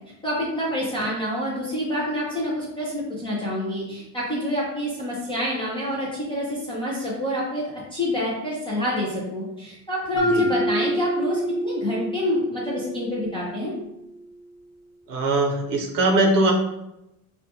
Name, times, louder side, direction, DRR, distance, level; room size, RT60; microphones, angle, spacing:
voice 1, 0.2-13.7, left 1 dB, 15° left, -6 dB, 0.3 m, -27 dB
Mallet percussion, 10.2-14.2, right 1 dB, 45° left, 0.7 m, -29 dB
voice 2, 10.2-10.5 15.1-16.5, right 2 dB, 50° right, 2 dB, 0.7 m, -21 dB
5.1 x 2.2 x 2.7 m, 0.89 s
cardioid pair, 175°, 42 cm